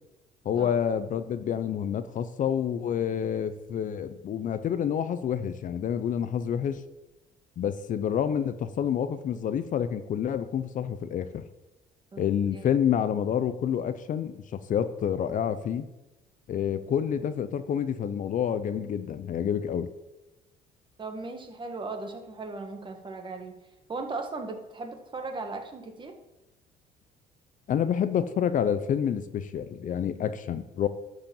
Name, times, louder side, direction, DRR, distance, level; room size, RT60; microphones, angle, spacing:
voice 1, 0.4-6.8 7.6-11.5 12.2-15.9 16.5-19.9 27.7-30.9, left 8 dB, 50° left, 12 dB, 0.7 m, -28 dB
voice 2, 21.0-23.6 23.9-26.1, right 3 dB, 30° right, 4 dB, 1.7 m, -37 dB
12.0 x 5.2 x 7.2 m, 1.0 s
cardioid pair, 110°, 17 cm